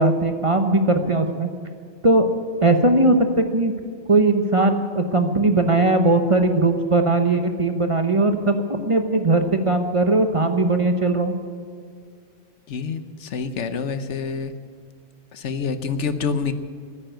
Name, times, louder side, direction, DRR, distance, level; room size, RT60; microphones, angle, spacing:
voice 1, 0.0-1.5 2.0-2.3 2.6-3.7 4.1-11.4, right 2 dB, 30° right, 6 dB, 0.9 m, -19 dB
voice 2, 12.7-14.5 15.3-16.5, left 5 dB, 75° left, 10 dB, 1.2 m, -27 dB
14.0 x 10.0 x 9.0 m, 2.1 s
omnidirectional pair, 1.2 m